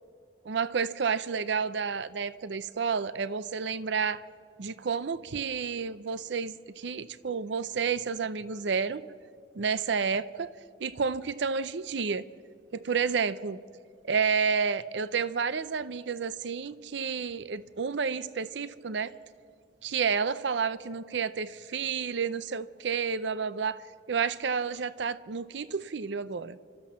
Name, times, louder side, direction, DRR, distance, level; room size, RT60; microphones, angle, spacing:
voice 1, 0.4-4.2 4.6-9.0 9.6-10.5 10.8-12.2 12.7-13.6 14.1-19.1 19.8-23.8 24.1-26.6, right 6 dB, 70° right, 16 dB, 0.6 m, -30 dB
30.0 x 13.5 x 7.4 m, 2.2 s
head